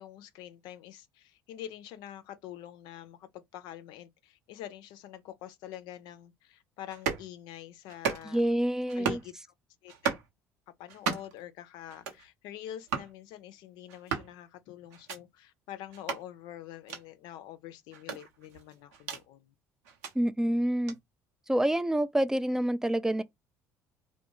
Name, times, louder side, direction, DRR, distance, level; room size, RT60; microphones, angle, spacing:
voice 1, 0.0-8.4 8.9-9.4 9.8-10.2 10.8-19.5, left 12 dB, 65° left, 0.5 m, -46 dB
sound 1, 6.9-7.3 7.9-8.5 8.9-9.3 9.9-10.3 10.9-11.4 11.9-12.2 12.9-13.1 13.9-14.3 14.9-15.2 15.9-16.2 16.9-17.0 17.9-19.2 19.8-20.1 20.9-21.0, right 6 dB, 75° right, 0.8 m, -35 dB
voice 2, 8.2-9.2 20.2-21.0 21.5-23.2, right 1 dB, 5° right, 0.3 m, -27 dB
2.3 x 2.2 x 2.9 m
hypercardioid pair, 60°, 8 cm